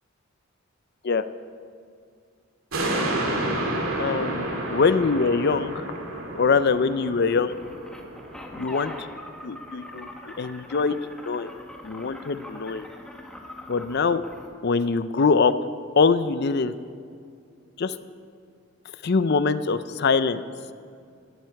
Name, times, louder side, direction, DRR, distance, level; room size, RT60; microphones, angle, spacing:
sound 1, 2.7-9.4 9.8-9.9, right 1 dB, 85° right, 2.4 m, -30 dB
voice 1, 4.0-5.9 6.3-7.5 8.6-9.1 9.4-11.5 11.8-12.9 13.7-14.2 14.6-15.5 16.0-16.7 17.8-18.0 19.0-20.4, left 4 dB, 55° left, 13 dB, 0.5 m, -23 dB
sound 2, 7.3-14.6, left 1 dB, 5° left, 1.2 m, -42 dB
17.0 x 12.5 x 4.7 m, 2.3 s
head